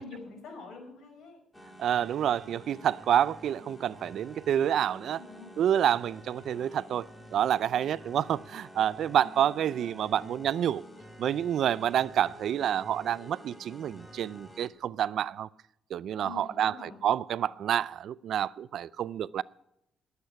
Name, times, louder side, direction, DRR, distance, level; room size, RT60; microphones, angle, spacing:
voice 1, 0.0-1.4 5.0-5.6 9.1-9.4 16.2-17.1 17.4-17.5, left 4 dB, 70° left, 4.9 m, -46 dB
sound 1, 1.5-14.7, equal, 10° left, 2.4 m, -49 dB
voice 2, 1.8-5.2 5.6-10.9 11.2-15.5 15.9-19.4, right 10 dB, 70° right, 0.4 m, -28 dB
19.5 x 8.2 x 5.7 m
cardioid pair, 90°, 0 cm